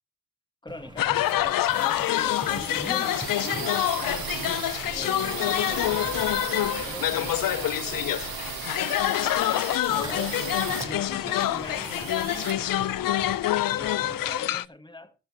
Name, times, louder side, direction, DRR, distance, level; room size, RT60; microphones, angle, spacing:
voice 1, 0.6-4.3 4.9-7.8 8.8-10.4 10.8-12.9 13.7-15.1, left 2 dB, 15° left, 1.5 m, -42 dB
sound 1, 0.7-14.6, right 1 dB, 10° right, 1.6 m, -44 dB
sound 2, 0.7-13.5, right 11 dB, 85° right, 0.9 m, -37 dB
sound 3, 1.0-14.6, left 13 dB, 70° left, 0.5 m, -26 dB
13.5 x 12.5 x 2.9 m
cardioid pair, 75°, 35 cm